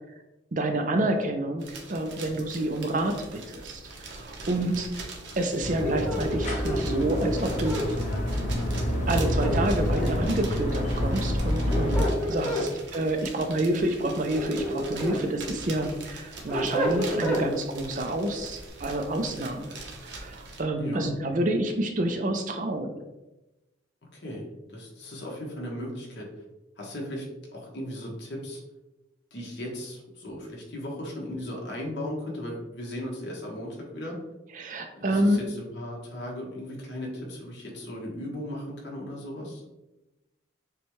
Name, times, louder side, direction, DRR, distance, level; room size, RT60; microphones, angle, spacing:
voice 1, 0.5-8.0 9.1-12.0 12.3-19.8 20.0-23.0 34.5-35.4, right 1 dB, 40° right, 5 dB, 0.4 m, -28 dB
Paper sound, 1.6-20.6, right 2 dB, 70° right, 0.8 m, -42 dB
sound 1, 5.6-12.0, equal, 35° left, 1.0 m, -28 dB
sound 2, 5.8-7.9 9.2-10.3 11.4-12.7 14.1-15.2 15.7-17.5, equal, 10° left, 1.1 m, -30 dB
voice 2, 20.7-21.1 24.1-26.4 26.8-27.2 27.5-28.6 29.3-34.2 34.9-39.6, left 1 dB, 65° left, -2 dB, 1.2 m, -37 dB
6.8 x 2.3 x 3.1 m, 1.0 s
head